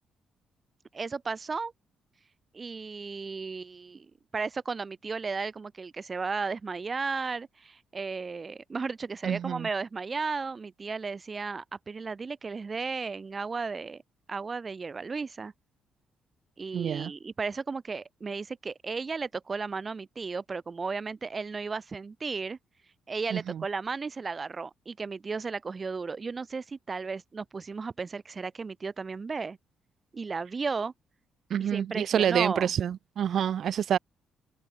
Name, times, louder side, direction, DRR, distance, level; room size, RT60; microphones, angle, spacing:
voice 1, 0.9-1.7 2.5-14.0 14.3-15.5 16.6-22.6 23.1-29.6 30.1-30.9 31.6-32.7, right 4 dB, 35° right, 1.5 m, -34 dB
voice 2, 9.2-9.7 16.7-17.1 23.3-23.4 31.5-34.0, right 9 dB, 65° right, 0.5 m, -27 dB
cardioid pair, 90°, 0 cm